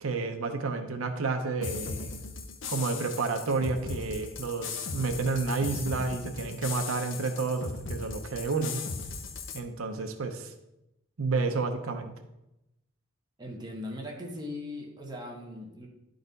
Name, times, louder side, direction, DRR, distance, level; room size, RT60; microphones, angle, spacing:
voice 1, 0.0-2.1 2.7-8.8 9.5-10.5 11.2-12.1, right 4 dB, 90° right, 6 dB, 0.7 m, -30 dB
sound 1, 1.6-9.6, left 4 dB, 65° left, 0.6 m, -38 dB
voice 2, 13.4-15.9, left 1 dB, 20° right, 0 dB, 1.0 m, -39 dB
10.5 x 4.0 x 4.0 m, 0.91 s
head